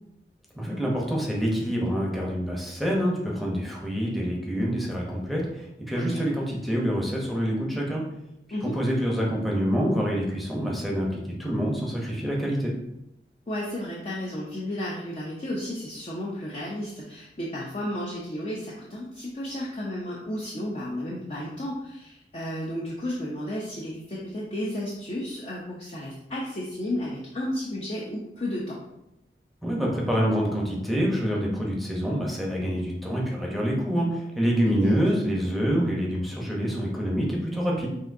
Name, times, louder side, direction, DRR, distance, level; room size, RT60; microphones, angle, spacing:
voice 1, 0.5-8.0 8.6-12.7 29.6-37.9, equal, ahead, -3 dB, 0.7 m, -26 dB
voice 2, 13.5-28.8 34.7-34.9, left 1 dB, 35° left, -4 dB, 0.6 m, -33 dB
6.2 x 2.6 x 2.6 m, 0.84 s
head